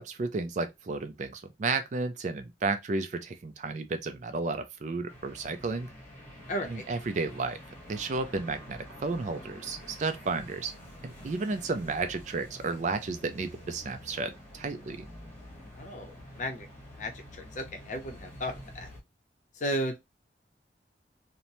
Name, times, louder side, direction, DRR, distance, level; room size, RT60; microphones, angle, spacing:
voice 1, 0.0-5.9 6.6-7.6 7.9-10.7 11.0-15.0, right 3 dB, 40° right, 0.4 m, -32 dB
sound 1, 5.1-19.0, equal, 10° left, 1.1 m, -48 dB
voice 2, 6.5-6.8 15.8-16.7 17.0-18.9 19.6-20.0, equal, 45° left, 0.6 m, -34 dB
2.9 x 2.1 x 2.6 m
head